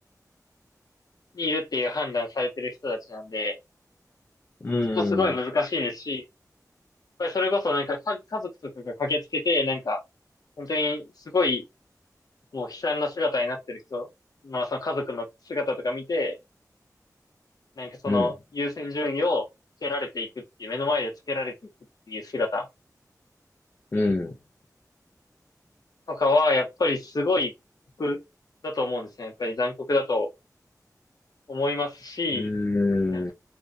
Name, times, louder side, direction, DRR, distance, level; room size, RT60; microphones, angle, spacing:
voice 1, 1.3-3.6 4.9-6.2 7.2-10.0 10.6-11.0 11.3-11.6 12.5-14.1 14.4-16.4 17.8-19.4 19.8-20.3 20.6-21.5 22.1-22.7 26.1-27.5 28.0-28.2 28.6-30.3 31.5-32.5 33.1-33.3, left 2 dB, 70° left, 0.7 m, -27 dB
voice 2, 4.6-5.3 18.1-18.3 23.9-24.3 32.3-33.3, left 2 dB, 35° left, 0.4 m, -25 dB
2.5 x 2.1 x 2.4 m
wide cardioid pair, 75°, 7 cm